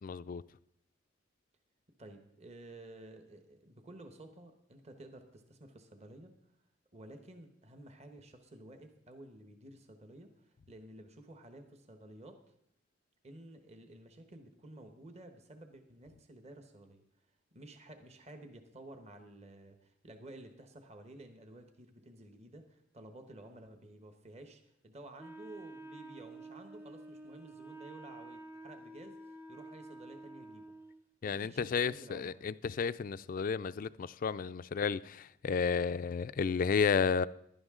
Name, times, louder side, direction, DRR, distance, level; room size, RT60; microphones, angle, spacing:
voice 1, 0.0-0.4 31.2-37.3, left 6 dB, 45° left, 0.3 m, -32 dB
voice 2, 2.0-6.3 6.9-12.4 13.2-17.0 17.5-30.7 31.2-32.4, right 1 dB, 35° right, 1.1 m, -53 dB
Wind instrument woodwind instrument, 25.2-31.0, right 2 dB, 10° right, 0.7 m, -50 dB
16.0 x 11.5 x 3.7 m
head